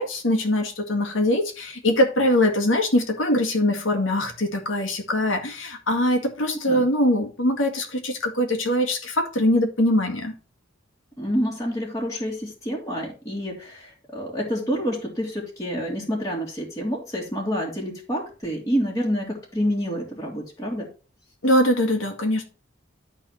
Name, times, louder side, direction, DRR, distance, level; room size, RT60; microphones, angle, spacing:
voice 1, 0.0-10.3 21.4-22.4, left 1 dB, 75° left, 2.0 m, -22 dB
voice 2, 11.2-20.9, equal, 15° left, 2.3 m, -28 dB
11.0 x 4.1 x 5.6 m
head